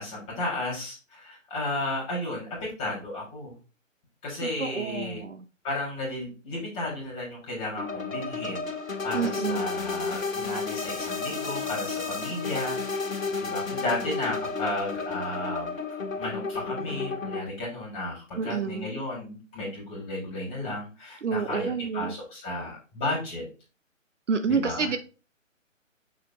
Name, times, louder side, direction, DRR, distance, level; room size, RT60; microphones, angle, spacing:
voice 1, 0.0-3.5 4.2-5.2 5.6-8.7 9.0-15.7 16.2-23.4 24.5-24.9, left 2 dB, 15° left, -3 dB, 3.4 m, -33 dB
voice 2, 4.6-5.4 9.1-9.6 18.4-18.9 21.2-22.1 24.3-25.0, right 6 dB, 65° right, 9 dB, 0.9 m, -28 dB
sound 1, 7.8-17.4, left 4 dB, 80° left, 1.8 m, -32 dB
6.7 x 5.0 x 3.0 m, 0.33 s
figure-of-eight pair, 145°, 39 cm